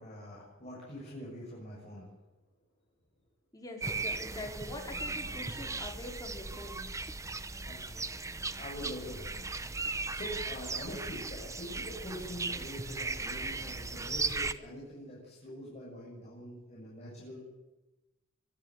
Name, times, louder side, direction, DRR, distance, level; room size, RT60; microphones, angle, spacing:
voice 1, 0.0-2.1 7.7-8.1 8.6-17.4, equal, 35° left, -5 dB, 7.2 m, -44 dB
voice 2, 3.5-6.8, left 1 dB, 20° left, 0 dB, 4.8 m, -44 dB
sound 1, 3.8-14.5, right 3 dB, 15° right, 0.9 m, -37 dB
24.5 x 11.5 x 9.9 m, 1.1 s
head